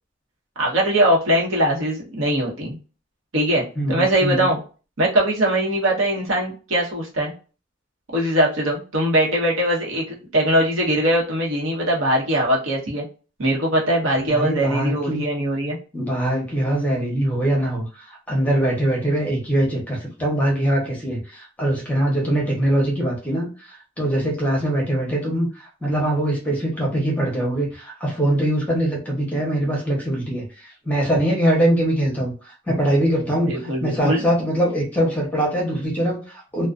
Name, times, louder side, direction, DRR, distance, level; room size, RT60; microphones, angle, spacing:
voice 1, 0.6-2.8 3.3-4.6 5.0-7.3 8.1-13.0 13.4-15.8 33.4-34.2, right 1 dB, 75° right, -3 dB, 1.0 m, -21 dB
voice 2, 3.8-4.5 14.2-15.2 15.9-33.5 33.8-36.7, right 1 dB, 5° left, -2 dB, 0.8 m, -22 dB
2.4 x 2.2 x 2.4 m, 0.35 s
head